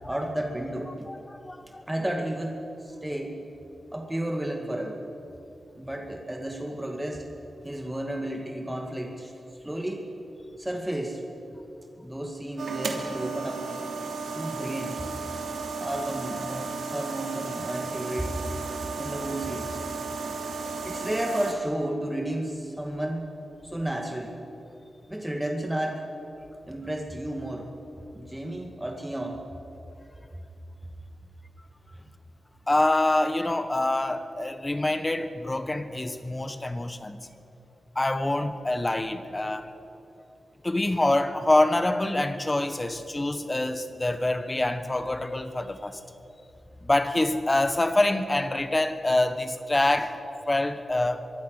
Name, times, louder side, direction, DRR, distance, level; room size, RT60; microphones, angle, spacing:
voice 1, 0.1-1.1 1.9-3.4 3.9-5.0 5.8-7.2 7.6-9.3 9.6-10.1 10.6-11.2 12.0-13.7 14.3-15.0 15.8-18.4 19.0-19.8 20.8-23.3 23.6-24.4 25.1-26.1 26.7-27.7 28.1-29.4, right 1 dB, 10° right, 2.1 m, -32 dB
voice 2, 1.1-1.8 32.7-37.2 37.9-39.7 40.6-46.0 46.8-50.2 50.5-51.2, left 2 dB, 20° left, 1.5 m, -26 dB
sound 1, 12.6-21.5, right 4 dB, 80° right, 3.0 m, -34 dB
24.5 x 23.0 x 6.6 m
wide cardioid pair, 100°, 0 cm